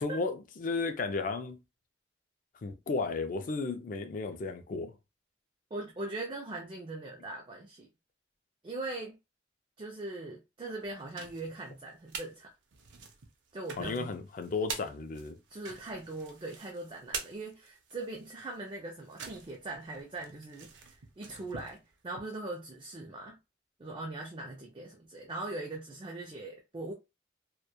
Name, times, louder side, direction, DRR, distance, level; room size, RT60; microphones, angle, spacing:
voice 1, 0.0-1.6 2.6-4.9 13.8-15.4, left 4 dB, 45° left, 0.4 m, -34 dB
voice 2, 5.7-7.9 8.6-9.2 9.8-12.5 13.5-14.1 15.5-23.4 23.8-26.9, right 2 dB, 25° right, 0.3 m, -41 dB
sound 1, 10.8-12.3 12.7-22.2, right 5 dB, 80° right, 0.5 m, -45 dB
2.9 x 2.1 x 2.2 m
head